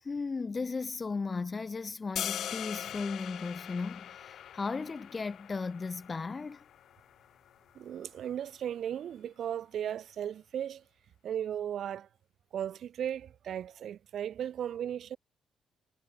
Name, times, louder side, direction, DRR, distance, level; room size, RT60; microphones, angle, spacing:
voice 1, 0.0-6.6, left 4 dB, 30° left, 1.0 m, -36 dB
sound 1, 2.2-8.3, left 10 dB, 70° left, 2.6 m, -42 dB
voice 2, 7.8-10.8 11.2-12.1 12.5-15.2, right 9 dB, 65° right, 0.6 m, -36 dB
cardioid pair, 90°, 0 cm